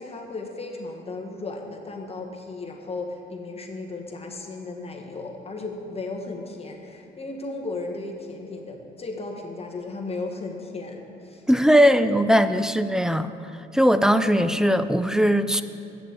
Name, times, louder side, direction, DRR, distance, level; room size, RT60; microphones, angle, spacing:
voice 1, 0.0-11.4, left 3 dB, 30° left, 1 dB, 1.5 m, -35 dB
voice 2, 11.5-13.3 13.7-15.6, equal, 5° right, 12 dB, 0.4 m, -19 dB
8.4 x 7.0 x 8.3 m, 2.7 s
cardioid pair, 90°, 20 cm